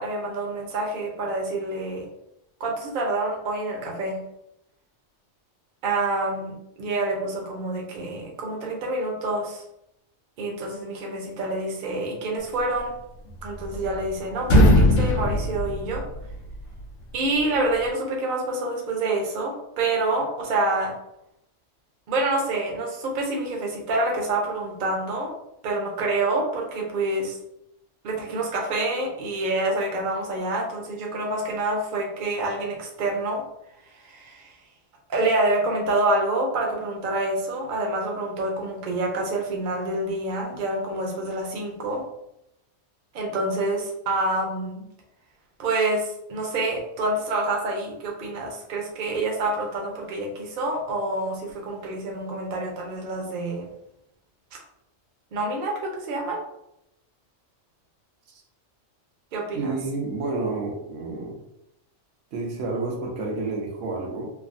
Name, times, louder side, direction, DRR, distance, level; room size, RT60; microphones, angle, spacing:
voice 1, 0.0-2.1 2.6-4.2 5.8-9.6 10.4-12.9 13.4-16.0 17.1-20.9 22.1-25.3 25.6-27.4 28.0-33.4 33.9-34.6 35.1-42.0 43.1-44.9 45.6-53.7 54.5-54.6 55.3-56.4 59.3-59.7, right 2 dB, 50° right, 0 dB, 0.7 m, -27 dB
sound 1, 13.3-14.1 14.4-16.5, left 1 dB, 75° left, 0.9 m, -19 dB
voice 2, 59.5-61.4 62.3-64.3, right 3 dB, 90° right, 0 dB, 1.1 m, -30 dB
3.2 x 2.0 x 2.5 m, 0.82 s
omnidirectional pair, 1.3 m